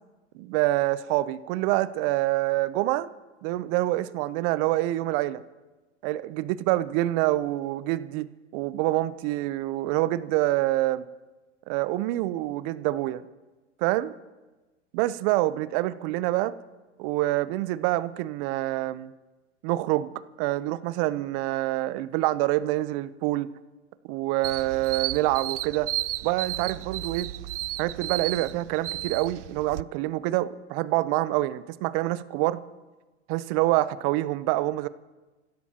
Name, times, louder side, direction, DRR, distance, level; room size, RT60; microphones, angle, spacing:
voice 1, 0.3-3.1 3.4-5.4 6.0-11.0 11.7-13.2 13.8-14.1 14.9-16.5 17.0-19.1 19.6-20.1 20.4-23.5 24.0-25.9 26.2-27.3 27.8-32.6 33.3-34.9, right 16 dB, 50° right, 15 dB, 0.8 m, -26 dB
sound 1, 24.4-29.8, right 16 dB, 75° right, 0.5 m, -33 dB
27.5 x 16.0 x 2.9 m, 1.2 s
hypercardioid pair, 105°, 36 cm